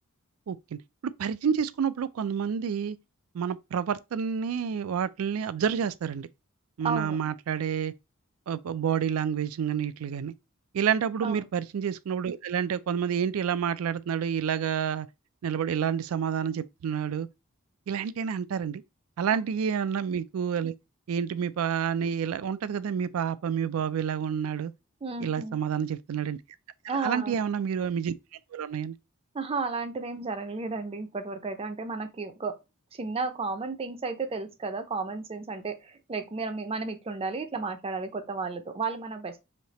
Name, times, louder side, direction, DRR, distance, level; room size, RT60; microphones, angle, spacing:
voice 1, 0.5-3.0 3.3-6.3 6.8-7.9 8.5-10.3 10.7-15.1 15.4-17.3 17.9-18.8 19.2-20.7 21.1-24.7 25.2-26.4 26.9-28.1 28.5-28.9, right 7 dB, 85° right, 0.4 m, -29 dB
voice 2, 6.8-7.2 11.2-11.4 25.0-25.6 26.9-27.4 29.3-32.5 32.9-39.4, right 4 dB, 30° right, 0.5 m, -33 dB
3.2 x 2.8 x 4.0 m
head